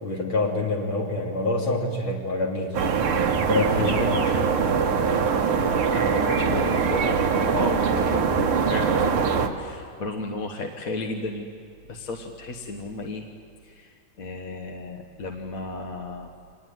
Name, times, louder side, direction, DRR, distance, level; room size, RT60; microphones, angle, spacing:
voice 1, 0.0-2.9 3.5-4.0, left 2 dB, 65° left, -1 dB, 3.8 m, -26 dB
sound 1, 2.7-9.5, right 6 dB, 85° right, 2.3 m, -22 dB
voice 2, 3.7-5.4 5.9-9.3 9.6-11.5 11.9-13.2 13.6-16.3, left 3 dB, 45° left, 3 dB, 1.5 m, -33 dB
26.0 x 19.5 x 9.4 m, 2.2 s
omnidirectional pair, 2.3 m